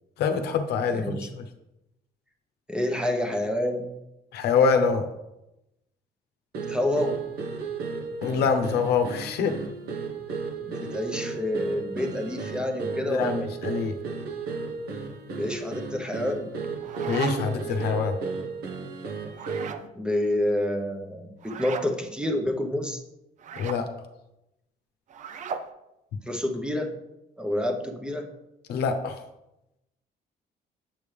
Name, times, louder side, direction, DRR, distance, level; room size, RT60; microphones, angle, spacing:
voice 1, 0.2-1.3 4.3-5.1 8.2-9.6 13.1-14.0 17.1-18.2 23.6-23.9 28.7-29.2, left 5 dB, 75° left, 6 dB, 0.8 m, -25 dB
voice 2, 0.9-1.3 2.7-3.9 6.7-7.2 10.8-13.4 15.4-16.5 20.0-23.0 26.3-26.9 27.4-28.3, left 1 dB, 5° right, 2 dB, 0.9 m, -28 dB
sound 1, 6.5-19.9, right 4 dB, 65° right, 1.1 m, -34 dB
sound 2, 16.6-17.7 19.3-19.9 21.4-21.9 23.4-23.8 25.1-25.7, right 5 dB, 45° right, 0.5 m, -35 dB
7.7 x 5.3 x 3.4 m, 0.90 s
cardioid pair, 110°, 17 cm